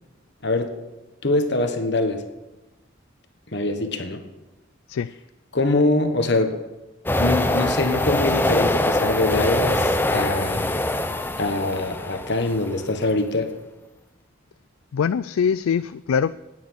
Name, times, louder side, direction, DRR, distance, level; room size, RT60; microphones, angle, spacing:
voice 1, 1.2-2.2 3.5-4.2 5.5-6.5 7.2-10.7 11.4-13.5, left 2 dB, 55° left, 6 dB, 1.3 m, -23 dB
sound 1, 7.1-12.8, left 1 dB, 10° left, 0.6 m, -23 dB
voice 2, 14.9-16.4, left 7 dB, 85° left, 14 dB, 0.3 m, -23 dB
10.5 x 9.5 x 9.6 m, 1.1 s
head